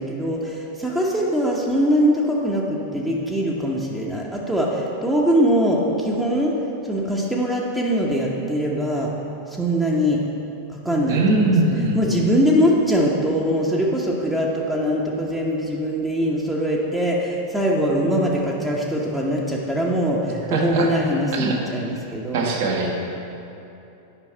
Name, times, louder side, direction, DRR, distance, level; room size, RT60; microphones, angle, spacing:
voice 1, 0.0-6.5 6.8-9.1 9.5-10.2 10.7-11.5 11.9-22.5, equal, 5° right, -3 dB, 0.8 m, -22 dB
voice 2, 11.1-12.0 20.5-20.9 21.3-21.6 22.3-22.9, right 3 dB, 55° right, 0 dB, 1.3 m, -21 dB
8.9 x 5.6 x 4.5 m, 2.8 s
figure-of-eight pair, 90°, 0 cm